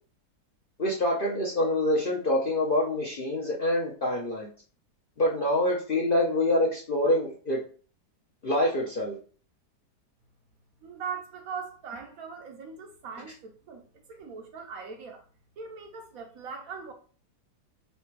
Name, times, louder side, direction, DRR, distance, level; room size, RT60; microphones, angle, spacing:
voice 1, 0.8-4.5 5.2-7.6 8.4-9.2, left 1 dB, 50° left, 0.7 m, -26 dB
voice 2, 10.8-13.8 14.1-15.2 15.6-16.9, right 6 dB, 65° right, 1.0 m, -40 dB
3.3 x 2.8 x 4.5 m
omnidirectional pair, 1.8 m